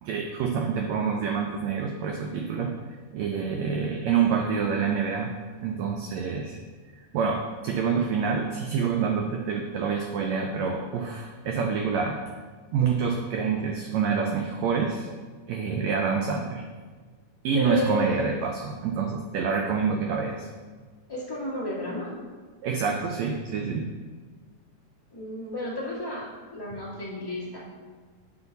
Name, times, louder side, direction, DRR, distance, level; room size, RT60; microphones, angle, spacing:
voice 1, 0.0-2.7 3.1-6.6 7.1-12.2 12.7-15.1 15.5-16.6 17.4-20.5 22.6-23.9, right 6 dB, 85° right, 2 dB, 1.5 m, -27 dB
voice 2, 17.5-18.2 21.1-22.2 25.1-27.6, left 2 dB, 20° left, -8 dB, 0.6 m, -32 dB
7.9 x 5.7 x 4.0 m, 1.4 s
omnidirectional pair, 3.8 m